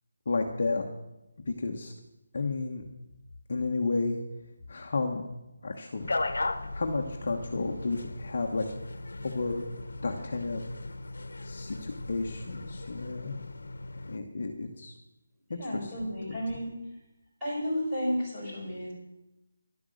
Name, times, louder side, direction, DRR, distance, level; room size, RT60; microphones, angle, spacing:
voice 1, 0.3-0.8 1.4-1.9 2.3-2.8 3.5-4.2 4.7-5.2 5.6-6.1 6.7-8.7 9.2-9.6 10.0-10.6 11.4-13.4 14.1-14.9 15.5-15.9 16.3-16.4, left 3 dB, 40° left, 2 dB, 1.1 m, -32 dB
sound 1, 6.0-14.2, left 2 dB, 75° left, 1.0 m, -37 dB
voice 2, 15.6-16.7 17.4-18.9, equal, 5° right, -10 dB, 4.9 m, -32 dB
11.5 x 10.5 x 6.4 m, 0.94 s
figure-of-eight pair, 175°, 0 cm